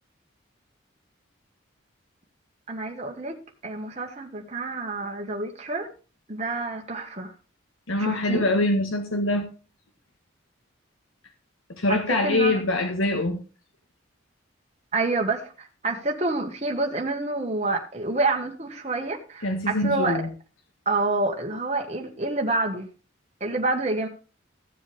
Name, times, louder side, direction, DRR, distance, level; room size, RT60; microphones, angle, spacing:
voice 1, 2.7-3.4 3.6-5.9 6.3-7.3 8.0-8.4 11.9-12.6 14.9-20.2 20.8-22.9 23.4-24.1, right 2 dB, 30° right, 1.6 m, -28 dB
voice 2, 7.9-9.4 11.7-13.4 19.4-20.3, left 2 dB, 80° left, 1.5 m, -24 dB
15.0 x 7.4 x 3.5 m
head